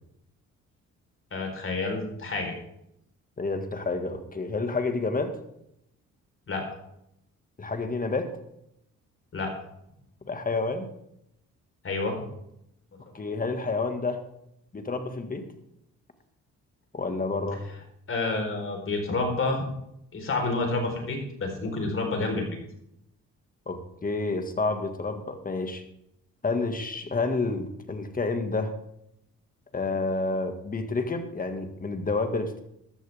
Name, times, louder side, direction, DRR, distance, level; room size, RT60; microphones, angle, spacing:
voice 1, 1.3-2.5 6.5-6.8 9.3-9.5 11.8-12.3 18.1-19.6 20.1-22.5, left 3 dB, 45° left, 3 dB, 4.4 m, -29 dB
voice 2, 3.4-5.3 7.6-8.3 10.3-10.9 13.1-14.2 14.7-15.5 16.9-17.7 23.7-25.8 26.4-28.7 29.7-32.6, left 3 dB, 30° left, 7 dB, 2.0 m, -29 dB
14.5 x 12.5 x 3.6 m, 0.78 s
cardioid pair, 90°, 30 cm